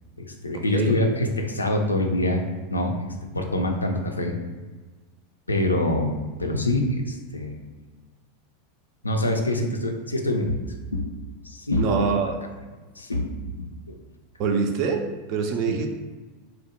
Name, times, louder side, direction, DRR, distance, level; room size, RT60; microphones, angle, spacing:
voice 1, 0.2-2.4 2.7-3.0 3.3-4.4 5.5-6.1 6.4-7.6 9.0-10.6 10.9-11.1 11.4-12.1 13.0-14.0 15.7-15.8, left 1 dB, 80° left, 3 dB, 0.3 m, -25 dB
voice 2, 11.8-12.4 14.4-15.0 15.3-15.9, right 5 dB, 45° right, 4 dB, 0.3 m, -24 dB
2.7 x 2.0 x 2.9 m, 1.3 s
figure-of-eight pair, 85°, 0 cm